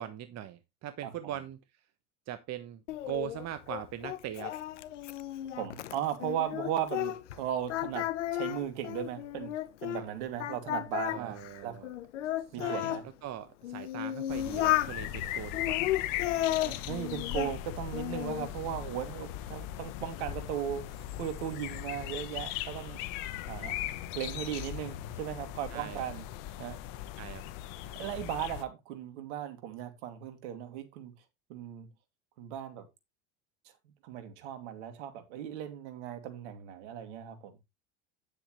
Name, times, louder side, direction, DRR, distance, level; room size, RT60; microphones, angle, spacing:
voice 1, 0.0-1.6 2.3-4.6 10.0-10.1 11.1-11.9 12.5-12.9 13.2-15.9 25.7-26.0 27.2-27.4, right 11 dB, 50° right, 1.2 m, -41 dB
voice 2, 1.0-1.4 5.6-9.5 9.8-11.8 12.5-13.0 16.4-23.0 23.5-23.7 24.1-26.2 26.6-26.8 27.9-31.1 31.5-31.9 32.4-32.9 34.0-37.6, right 10 dB, 75° right, 2.7 m, -37 dB
Singing, 2.9-7.4 7.7-10.0 10.4-13.0 13.6-14.9 15.5-17.5 17.9-18.5, left 14 dB, 85° left, 0.9 m, -33 dB
sound 1, 14.3-28.7, left 13 dB, 65° left, 1.2 m, -39 dB
10.0 x 8.3 x 3.2 m
hypercardioid pair, 80°, 35 cm